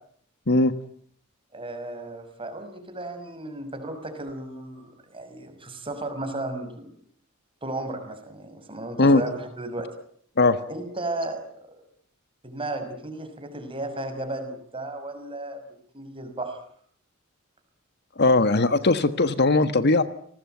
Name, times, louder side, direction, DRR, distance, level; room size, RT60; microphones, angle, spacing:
voice 1, 1.5-6.9 7.6-9.9 10.7-11.8 12.4-15.6 15.9-16.6, right 2 dB, 25° right, 7 dB, 6.0 m, -34 dB
voice 2, 18.2-20.0, left 2 dB, 55° left, 12 dB, 1.4 m, -19 dB
30.0 x 19.5 x 9.3 m, 0.64 s
head